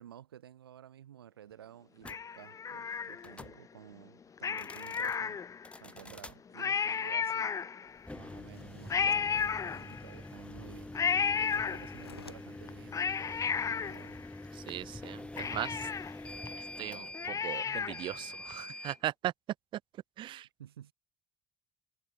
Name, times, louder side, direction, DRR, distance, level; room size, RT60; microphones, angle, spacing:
voice 1, 0.0-5.4 5.7-7.5 7.8-11.0 11.4-14.2 20.6-20.9, right 10 dB, 75° right, 1.8 m, -53 dB
sound 1, 2.0-2.2 3.2-3.6 4.5-5.2 5.6-6.4 8.0-19.0, left 1 dB, 10° left, 3.0 m, -46 dB
Cat, 2.1-3.5 4.4-5.8 6.2-6.3 6.5-8.1 8.9-10.3 10.9-12.2 12.7-14.7 15.0-15.1 15.4-18.2 18.5-18.6, left 6 dB, 25° left, 0.6 m, -33 dB
sound 2, 8.3-14.2, left 5 dB, 85° left, 6.5 m, -59 dB
voice 2, 14.6-15.9 16.8-19.3 20.2-20.5, right 13 dB, 40° right, 0.3 m, -38 dB
figure-of-eight pair, 55°, 13 cm